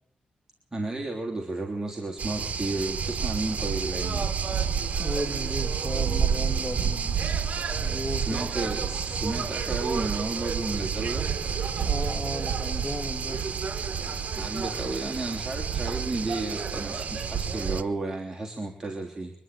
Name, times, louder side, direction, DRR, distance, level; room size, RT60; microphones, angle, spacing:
voice 1, 0.7-4.3 8.2-11.3 14.3-19.3, right 2 dB, 20° right, -1 dB, 3.2 m, -32 dB
sound 1, 2.2-17.8, right 6 dB, 55° right, 1.5 m, -29 dB
voice 2, 5.0-7.1 7.8-8.4 11.8-13.4, equal, 10° left, 5 dB, 2.3 m, -34 dB
23.5 x 11.5 x 9.3 m, 0.66 s
cardioid pair, 105°, 3 cm